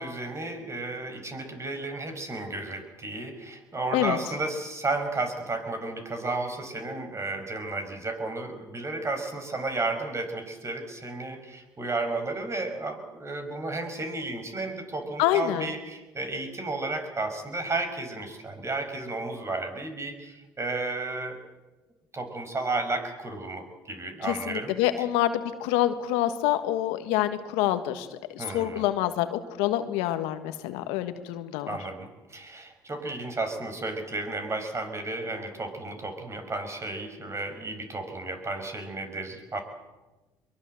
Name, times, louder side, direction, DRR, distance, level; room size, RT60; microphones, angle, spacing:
voice 1, 0.0-21.4 22.1-24.8 28.4-28.9 31.7-39.6, right 2 dB, 30° right, 7 dB, 5.5 m, -33 dB
voice 2, 15.2-15.7 24.2-31.8, left 13 dB, 80° left, 9 dB, 1.6 m, -27 dB
22.5 x 22.5 x 7.8 m, 1.1 s
supercardioid pair, 70°, 10 cm